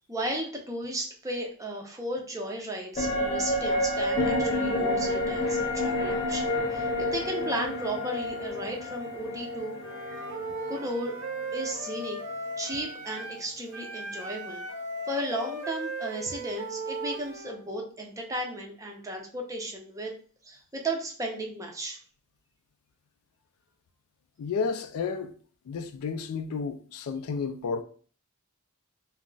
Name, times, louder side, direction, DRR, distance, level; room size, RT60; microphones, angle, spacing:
voice 1, 0.1-9.7 10.1-10.3 10.7-11.2 11.5-12.2 12.6-14.6 15.1-20.1 20.4-22.0, right 1 dB, 15° right, 0.5 m, -35 dB
sound 1, 3.0-12.5 12.8-12.9, left 1 dB, 25° left, 0.8 m, -30 dB
Wind instrument woodwind instrument, 9.8-13.4 13.7-17.6, right 2 dB, 80° right, 0.9 m, -37 dB
voice 2, 24.4-25.3 25.7-27.8, left 5 dB, 80° left, 0.3 m, -31 dB
2.3 x 2.0 x 3.8 m
head